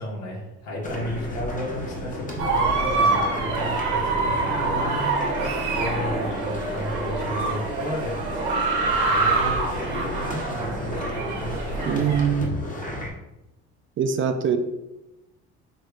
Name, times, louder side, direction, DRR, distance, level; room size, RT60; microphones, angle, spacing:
voice 1, 0.0-5.1 5.7-8.2 9.0-12.2, equal, 75° left, -2 dB, 1.5 m, -33 dB
sound 1, 0.8-13.1, left 1 dB, 25° left, 1.1 m, -33 dB
sound 2, 2.4-12.2, right 3 dB, 80° right, 1.3 m, -26 dB
voice 2, 11.9-12.5 14.0-14.6, right 7 dB, 45° right, 7 dB, 0.5 m, -22 dB
5.8 x 3.2 x 2.5 m, 0.96 s
cardioid pair, 95°, 29 cm